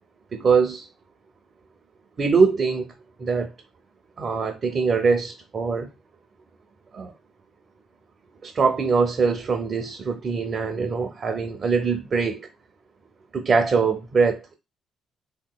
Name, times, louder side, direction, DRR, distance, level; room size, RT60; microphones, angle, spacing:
voice 1, 0.3-0.9 2.2-2.9 3.2-3.5 4.2-5.9 6.9-7.1 8.4-12.5 13.3-14.5, right 5 dB, 45° right, 0.5 m, -22 dB
3.5 x 2.8 x 2.2 m
cardioid pair, 90°, 0 cm